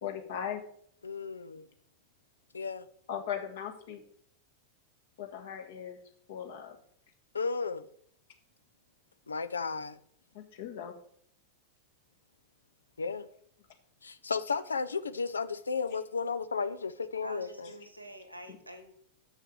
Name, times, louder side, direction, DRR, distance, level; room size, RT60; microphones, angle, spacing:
voice 1, 0.0-0.6 3.1-4.0 5.2-6.0 6.3-6.8 10.3-10.9 18.5-18.6, left 9 dB, 55° left, 1.6 m, -38 dB
voice 2, 1.0-1.6 2.5-2.9 7.3-7.9 9.3-10.0 13.0-13.3 14.0-17.7, left 5 dB, 75° left, 0.5 m, -34 dB
voice 3, 17.2-18.9, right 1 dB, 85° right, 1.5 m, -46 dB
7.1 x 6.5 x 6.4 m
figure-of-eight pair, 90°, 0 cm